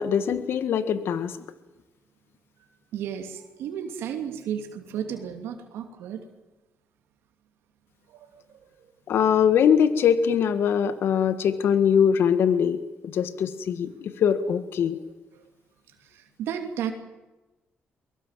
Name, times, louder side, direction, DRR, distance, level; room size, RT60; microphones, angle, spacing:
voice 1, 0.0-1.3 9.1-15.0, left 8 dB, 70° left, 12 dB, 1.5 m, -22 dB
voice 2, 2.6-6.2 8.1-8.6 16.1-16.9, right 9 dB, 85° right, 5 dB, 2.7 m, -34 dB
23.0 x 22.0 x 7.5 m, 1.1 s
cardioid pair, 75°, 4 cm